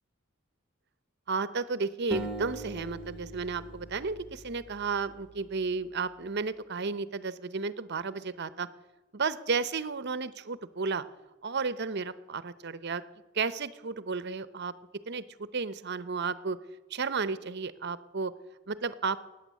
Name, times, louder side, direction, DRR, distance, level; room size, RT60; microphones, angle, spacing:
voice 1, 1.3-8.7 9.1-11.0 11.4-13.0 13.3-14.7 15.1-15.2 15.5-16.6 16.9-18.3 18.7-19.2, right 4 dB, 55° right, 15 dB, 0.8 m, -33 dB
sound 1, 2.1-5.3, right 1 dB, 5° right, 1.7 m, -41 dB
14.5 x 9.3 x 9.3 m, 1.1 s
head